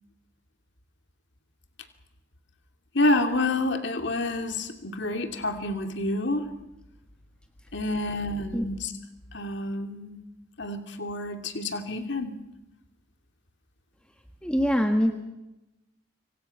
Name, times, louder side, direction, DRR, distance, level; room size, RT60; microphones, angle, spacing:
voice 1, 2.9-6.5 7.7-8.9 9.3-10.2 10.6-12.3, left 2 dB, 60° left, 6 dB, 2.5 m, -28 dB
voice 2, 14.4-15.1, equal, 5° left, 4 dB, 1.5 m, -23 dB
26.5 x 25.0 x 5.8 m, 0.94 s
head